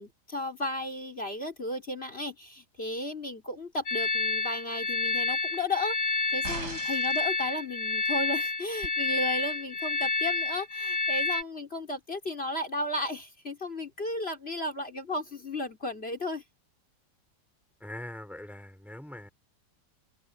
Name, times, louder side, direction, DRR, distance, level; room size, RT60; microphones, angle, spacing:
voice 1, 0.0-6.0 6.3-16.4, left 1 dB, 35° left, 4.1 m, -34 dB
sound 1, 3.9-11.4, left 3 dB, 85° left, 2.5 m, -29 dB
sound 2, 6.4-7.3 8.8-8.9, right 2 dB, 70° right, 6.9 m, -38 dB
voice 2, 17.8-19.3, left 1 dB, ahead, 3.9 m, -42 dB
open air
omnidirectional pair, 1.9 m